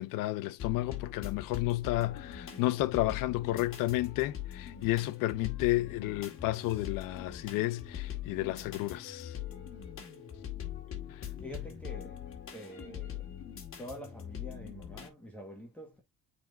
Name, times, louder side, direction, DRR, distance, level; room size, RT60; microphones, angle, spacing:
voice 1, 0.0-9.4 11.1-11.2, left 17 dB, 90° left, 0.8 m, -32 dB
sound 1, 0.6-15.1, left 10 dB, 40° left, 2.0 m, -42 dB
voice 2, 11.4-12.2 12.5-13.3 13.8-16.0, equal, 5° left, 1.6 m, -46 dB
8.8 x 4.3 x 2.7 m
cardioid pair, 145°, 32 cm